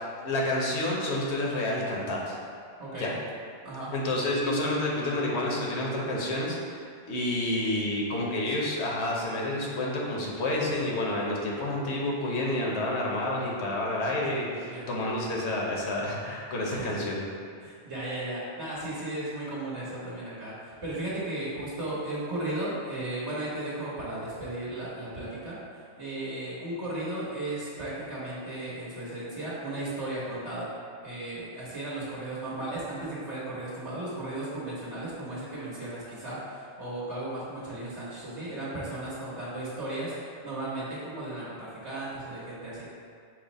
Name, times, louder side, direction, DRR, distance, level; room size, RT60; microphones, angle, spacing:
voice 1, 0.2-2.4 3.0-3.1 3.9-17.2, left 1 dB, 75° left, -3 dB, 1.1 m, -29 dB
voice 2, 2.8-3.1 3.6-3.9 14.6-14.9 16.7-16.9 17.6-30.7 31.0-42.9, right 1 dB, 75° right, -9 dB, 1.7 m, -35 dB
6.1 x 2.1 x 4.0 m, 2.2 s
omnidirectional pair, 1.2 m